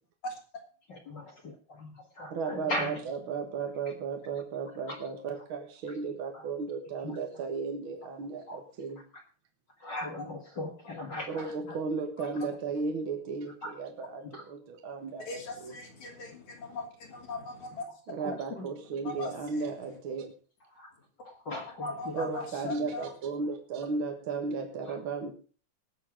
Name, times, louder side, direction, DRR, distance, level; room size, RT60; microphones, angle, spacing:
voice 1, 0.9-3.0 4.9-5.0 5.9-6.0 6.3-6.5 7.0-7.2 8.5-8.6 9.1-9.2 9.8-11.8 12.3-12.4 13.6-13.7 14.2-14.4 16.7-16.8 18.2-18.7 19.0-19.1 20.6-20.9 21.2-22.7 24.9-25.0, left 1 dB, 40° left, 1 dB, 2.0 m, -39 dB
voice 2, 2.3-9.0 11.3-15.7 18.1-20.3 22.1-25.3, right 4 dB, 50° right, 4 dB, 1.9 m, -35 dB
voice 3, 15.3-17.9 19.0-19.7 21.8-23.1, left 2 dB, 70° left, 1 dB, 4.2 m, -39 dB
19.0 x 6.9 x 5.0 m, 0.39 s
omnidirectional pair, 3.4 m